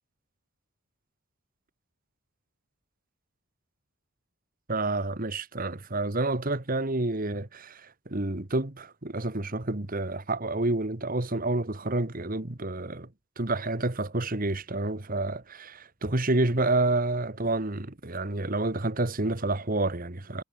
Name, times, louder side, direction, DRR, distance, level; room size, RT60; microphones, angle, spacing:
voice 1, 4.7-13.1 13.4-20.4, right 2 dB, 40° right, 1.6 m, -29 dB
head